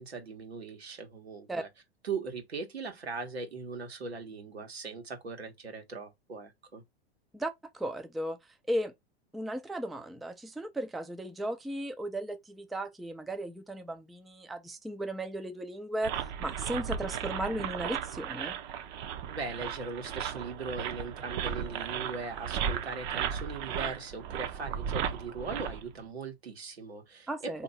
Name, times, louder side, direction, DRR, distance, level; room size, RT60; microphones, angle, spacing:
voice 1, 0.0-1.7 2.0-6.8 19.3-27.6, right 4 dB, 85° right, 1.4 m, -39 dB
voice 2, 7.3-8.4 8.7-8.9 9.3-18.6 27.3-27.6, right 1 dB, ahead, 0.4 m, -36 dB
sound 1, 16.0-25.9, right 8 dB, 50° right, 0.7 m, -35 dB
4.2 x 2.8 x 3.9 m
hypercardioid pair, 95°, 31 cm